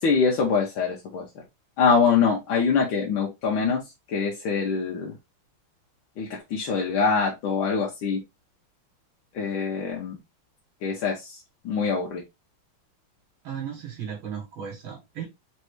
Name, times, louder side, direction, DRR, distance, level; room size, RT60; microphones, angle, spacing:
voice 1, 0.0-1.3 1.8-3.8 4.1-5.1 6.2-8.2 9.3-10.2 10.8-11.4 11.7-12.2, left 5 dB, 75° left, 1.7 m, -24 dB
voice 2, 13.4-15.3, right 8 dB, 80° right, 2.0 m, -35 dB
4.1 x 3.3 x 3.1 m
omnidirectional pair, 2.2 m